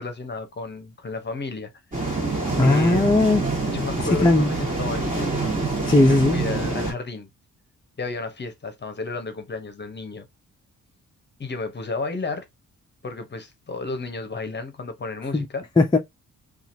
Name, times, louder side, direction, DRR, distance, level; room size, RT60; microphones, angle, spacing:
voice 1, 0.0-1.7 2.6-3.1 3.7-5.3 6.0-7.3 8.0-10.2 11.4-12.5 13.0-15.6, left 3 dB, 30° left, 0.8 m, -32 dB
sound 1, 1.9-6.9, right 3 dB, 25° right, 1.5 m, -26 dB
voice 2, 2.6-3.4 4.2-4.5 5.9-6.4 15.3-15.4 15.8-16.0, left 2 dB, 15° left, 0.5 m, -17 dB
2.8 x 2.4 x 2.6 m
cardioid pair, 70°, 34 cm